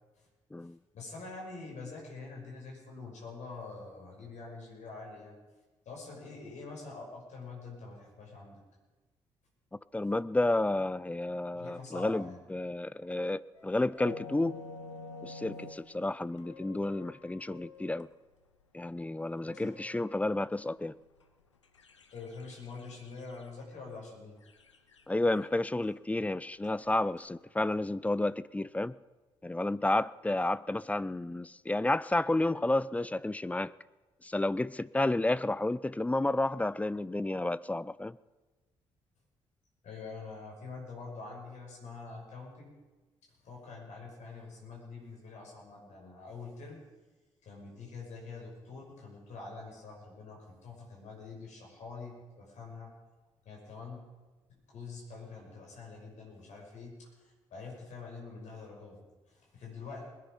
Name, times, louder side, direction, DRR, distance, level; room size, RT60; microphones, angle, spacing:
voice 1, 0.9-5.4 5.8-8.6 11.5-12.4 19.4-19.7 22.1-24.3 39.8-42.7 43.4-46.8 47.4-52.9 53.4-54.0 54.7-59.0 59.3-60.1, left 4 dB, 55° left, -2 dB, 6.1 m, -45 dB
voice 2, 9.9-14.6 15.2-18.1 18.7-21.0 25.1-29.0 29.4-33.7 34.2-38.2, left 2 dB, 10° left, 18 dB, 0.4 m, -31 dB
sound 1, 13.5-18.1 18.6-18.7 19.0-23.8 24.4-25.9 26.5-27.3, left 3 dB, 85° left, 0.7 m, -50 dB
21.0 x 10.5 x 5.3 m, 1.2 s
figure-of-eight pair, 40°, 15 cm